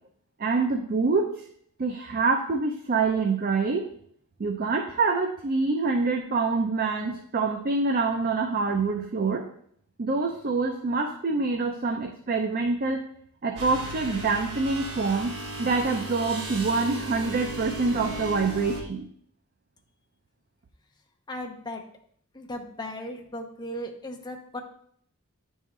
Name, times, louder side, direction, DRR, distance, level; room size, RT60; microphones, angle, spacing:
voice 1, 0.4-1.3 1.8-3.9 4.4-9.5 10.0-13.0 13.4-19.0, right 4 dB, 40° right, 4 dB, 0.5 m, -26 dB
sound 1, 13.6-18.8, right 2 dB, 90° right, 1.2 m, -36 dB
voice 2, 21.3-21.8 22.3-24.6, left 1 dB, 20° left, 1 dB, 0.7 m, -36 dB
9.5 x 3.6 x 3.1 m, 0.66 s
head